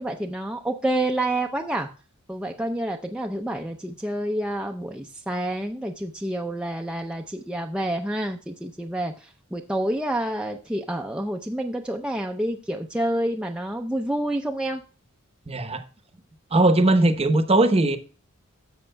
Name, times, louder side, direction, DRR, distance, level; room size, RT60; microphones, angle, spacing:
voice 1, 0.0-1.9 2.3-14.8, right 1 dB, 5° right, 0.5 m, -28 dB
voice 2, 15.5-15.8 16.5-18.0, right 2 dB, 30° right, 0.8 m, -19 dB
13.0 x 7.1 x 2.2 m
head